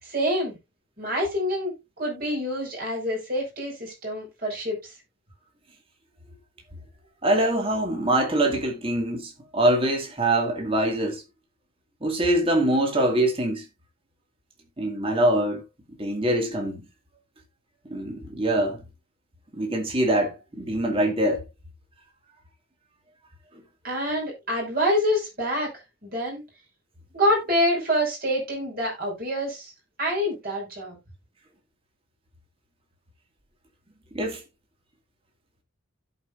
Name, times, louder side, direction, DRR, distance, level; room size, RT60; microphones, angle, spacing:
voice 1, 0.0-0.6 1.0-4.9 23.8-25.7 26.0-26.4 27.1-29.7 30.0-31.0, equal, 50° right, 5.6 m, -26 dB
voice 2, 7.2-11.2 12.0-13.6 14.8-15.6 16.0-16.8 17.9-18.8 19.5-21.4 34.1-34.4, right 1 dB, 30° right, 2.2 m, -24 dB
16.0 x 5.4 x 2.6 m
head